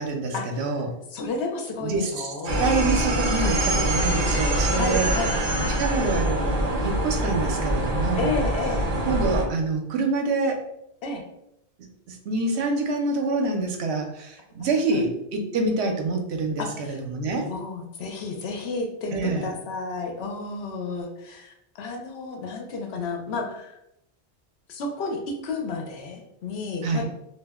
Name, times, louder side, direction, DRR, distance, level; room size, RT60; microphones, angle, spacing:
voice 1, 0.0-0.9 1.8-5.1 5.8-8.3 9.0-10.6 12.1-17.5 19.1-19.5 26.8-27.1, right 3 dB, 75° right, 3 dB, 0.8 m, -26 dB
voice 2, 1.1-2.7 4.7-5.8 8.2-8.9 11.0-11.2 14.6-15.1 16.6-17.0 17.4-23.8 24.7-27.1, left 3 dB, 75° left, 3 dB, 0.8 m, -32 dB
sound 1, 2.5-9.4, right 1 dB, 45° right, 0.6 m, -24 dB
2.2 x 2.0 x 3.4 m, 0.81 s
omnidirectional pair, 1.1 m